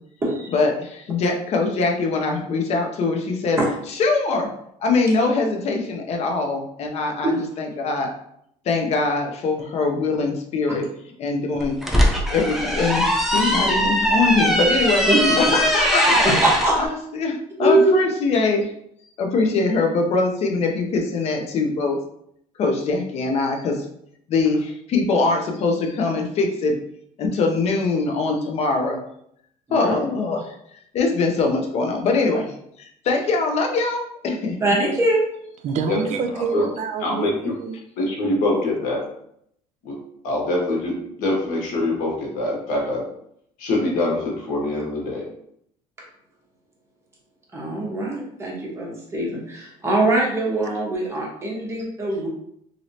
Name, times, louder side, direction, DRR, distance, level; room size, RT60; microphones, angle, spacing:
voice 1, 0.5-3.6 3.9-4.5 4.8-7.3 7.6-8.1 8.6-10.9 11.2-11.8 12.3-15.0 15.3-16.4 16.8-18.7 19.2-22.0 22.6-23.8 24.3-26.7 27.2-29.0 29.7-30.6 30.9-32.5 32.8-34.6, left 3 dB, 55° left, 3 dB, 0.7 m, -22 dB
sound 1, 11.6-16.7, equal, ahead, 0.6 m, -20 dB
voice 2, 16.2-16.8 17.6-18.0 29.7-29.9 34.6-35.2 47.5-52.3, right 2 dB, 20° right, -4 dB, 1.2 m, -22 dB
voice 3, 35.6-37.8, right 5 dB, 60° right, 7 dB, 0.5 m, -27 dB
voice 4, 36.3-36.7 37.0-37.5 38.0-39.0 39.8-40.0 40.2-43.0 43.6-45.2, left 2 dB, 80° left, -2 dB, 1.2 m, -24 dB
3.1 x 2.7 x 2.7 m, 0.71 s
cardioid pair, 110°, 13 cm